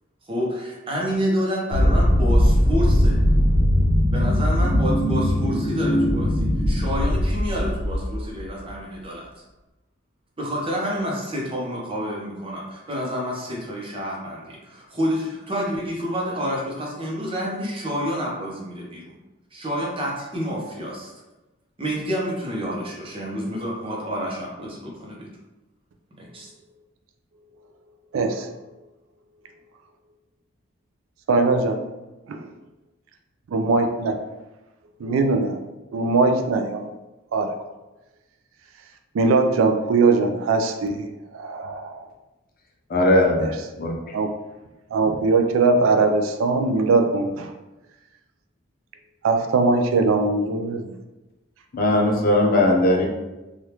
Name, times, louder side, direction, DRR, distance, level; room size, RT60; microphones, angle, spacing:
voice 1, 0.3-3.2 4.1-9.3 10.4-19.1 19.5-21.1 21.8-25.3 26.2-26.5, equal, 30° right, 0.7 m, -29 dB
sound 1, 1.7-8.5, left 1 dB, 80° left, 0.8 m, -20 dB
voice 2, 28.1-28.5 31.3-31.8 32.3-32.4 33.5-34.2 35.0-35.6 35.9-36.9 37.3-37.5 39.1-42.1 44.1-44.3 44.9-47.5 49.2-51.0, right 3 dB, 85° right, 0.4 m, -21 dB
voice 3, 42.9-43.5 43.8-44.2 51.7-53.1, left 1 dB, 45° left, 0.6 m, -19 dB
3.3 x 2.3 x 2.9 m
head